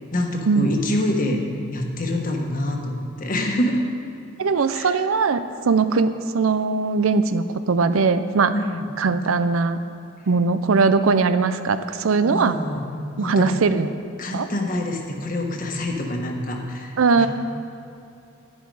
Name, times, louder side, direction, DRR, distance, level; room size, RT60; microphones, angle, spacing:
voice 1, 0.1-1.4 1.7-3.8 4.7-5.0 8.5-8.9 12.3-12.8 13.2-13.6 14.2-17.3, left 1 dB, 40° left, 2 dB, 1.3 m, -26 dB
voice 2, 4.4-8.5 9.0-9.8 10.3-12.6 13.2-13.9 14.3-14.5 17.0-17.3, right 4 dB, 85° right, 11 dB, 0.5 m, -20 dB
10.5 x 10.5 x 4.8 m, 2.8 s
head